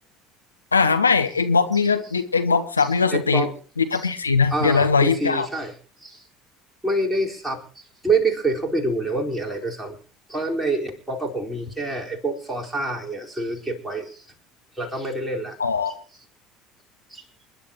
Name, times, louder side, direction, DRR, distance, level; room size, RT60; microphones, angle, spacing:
voice 1, 0.7-3.5 3.8-5.5 15.6-15.9, left 5 dB, 80° left, 9 dB, 0.8 m, -20 dB
voice 2, 2.8-3.5 3.9-4.1 4.5-5.7 6.0-6.2 6.8-7.6 8.0-10.0 10.3-14.3 14.7-15.6 15.9-16.0 17.1-17.2, right 2 dB, 5° right, -2 dB, 4.5 m, -26 dB
28.0 x 11.5 x 3.0 m, 0.39 s
figure-of-eight pair, 60°, 0 cm